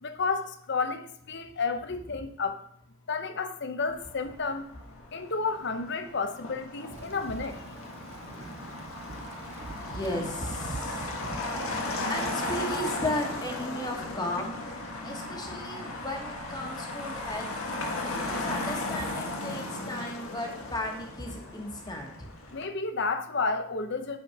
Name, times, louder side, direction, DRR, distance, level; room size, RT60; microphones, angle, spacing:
voice 1, 0.0-2.7 3.1-4.7 5.1-7.6 22.5-24.2, left 4 dB, 55° left, 8 dB, 0.8 m, -31 dB
Motor vehicle (road), 3.9-22.6, left 2 dB, 80° left, 1.6 m, -36 dB
Thunder / Rain, 6.9-12.1, right 2 dB, 30° right, 0.4 m, -42 dB
voice 2, 9.8-11.2 12.1-14.5 15.0-17.5 18.1-22.3, left 1 dB, 20° left, 1 dB, 1.4 m, -35 dB
8.3 x 4.5 x 5.8 m, 0.67 s
head